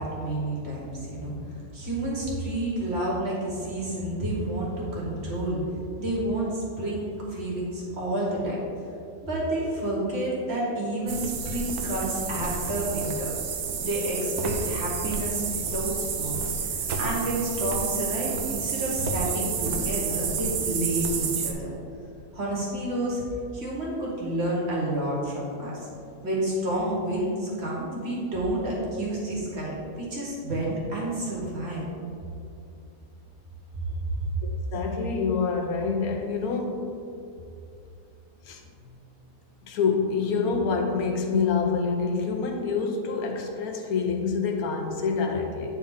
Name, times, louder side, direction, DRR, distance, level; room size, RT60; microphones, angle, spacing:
voice 1, 0.0-5.6 6.0-8.6 9.2-13.3 13.8-16.5 17.0-21.8 22.3-23.2 23.5-25.9 26.2-31.9, right 1 dB, 45° right, -5 dB, 1.8 m, -29 dB
sound 1, 11.1-21.5, right 5 dB, 85° right, 1.2 m, -30 dB
voice 2, 34.7-36.9 38.4-38.9 39.6-45.7, left 5 dB, 80° left, 3 dB, 1.2 m, -27 dB
8.9 x 4.2 x 3.7 m, 2.5 s
omnidirectional pair, 1.6 m